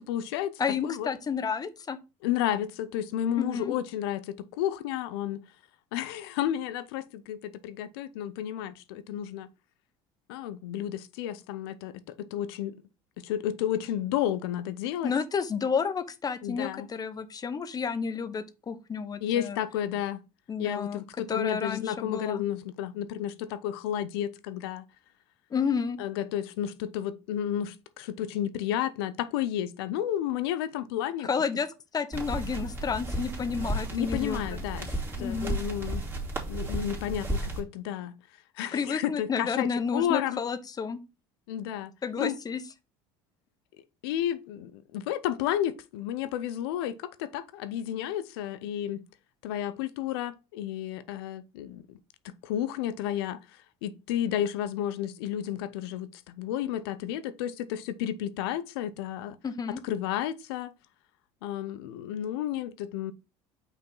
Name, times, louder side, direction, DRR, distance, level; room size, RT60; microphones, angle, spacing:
voice 1, 0.1-0.5 0.8-1.1 2.2-5.4 5.9-7.4 7.6-9.5 10.3-11.9 12.2-12.7 13.2-15.1 16.4-16.9 19.2-20.2 20.6-24.8 26.0-31.3 33.9-34.9 35.2-36.0 36.5-38.1 38.6-40.4 41.5-41.9 42.2-42.4 44.0-49.0 49.4-51.8 52.3-53.4 53.8-56.1 56.4-59.4 59.8-60.7 61.4-63.1, left 11 dB, 80° left, 0.6 m, -31 dB
voice 2, 0.6-2.0 3.4-3.7 15.0-19.6 20.5-22.4 25.5-26.0 31.2-31.7 31.9-34.6 35.2-35.6 38.7-41.0 42.0-42.6 59.4-59.8, left 6 dB, 30° left, 0.9 m, -31 dB
sound 1, 32.1-37.6, right 1 dB, 15° right, 2.6 m, -33 dB
5.7 x 4.5 x 3.9 m
supercardioid pair, 85°, 13 cm